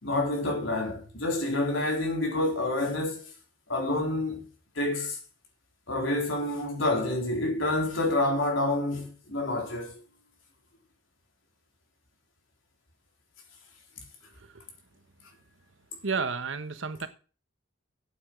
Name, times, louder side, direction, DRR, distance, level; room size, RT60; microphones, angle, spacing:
voice 1, 0.0-3.3 3.7-4.5 4.8-5.2 5.9-9.9, left 2 dB, 80° left, 4.0 m, -28 dB
voice 2, 16.0-17.1, right 5 dB, 75° right, 1.2 m, -32 dB
8.8 x 8.4 x 6.2 m
head